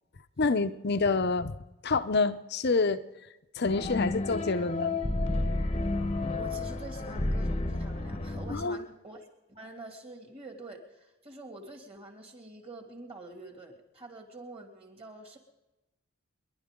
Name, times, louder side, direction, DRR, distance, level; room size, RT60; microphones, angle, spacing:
voice 1, 0.4-1.5 1.8-3.0 3.6-5.0 8.5-8.8, left 3 dB, 50° left, 11 dB, 0.7 m, -27 dB
sound 1, 3.7-8.6, left 2 dB, 25° left, 1.0 m, -31 dB
voice 2, 6.3-15.4, right 2 dB, 25° right, 3 dB, 2.5 m, -46 dB
29.5 x 11.5 x 3.7 m, 1.0 s
head